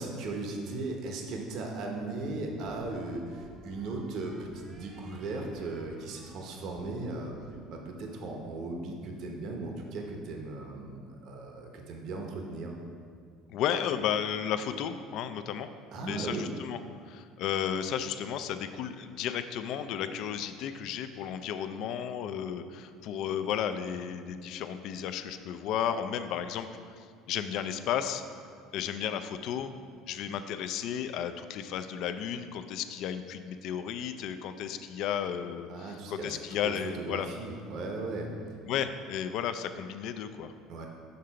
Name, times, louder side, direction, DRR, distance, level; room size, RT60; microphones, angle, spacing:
voice 1, 0.0-7.3 7.7-12.8 15.9-16.5 35.7-38.3 40.7-40.9, right 2 dB, 60° right, 2 dB, 0.9 m, -37 dB
sound 1, 1.3-10.0, right 2 dB, 30° right, 0.8 m, -51 dB
voice 2, 13.5-15.7 16.0-16.8 17.1-28.2 28.7-29.7 30.1-37.3 38.7-40.5, left 9 dB, 60° left, 10 dB, 0.4 m, -33 dB
6.6 x 3.8 x 5.6 m, 2.1 s
cardioid pair, 125°, 0 cm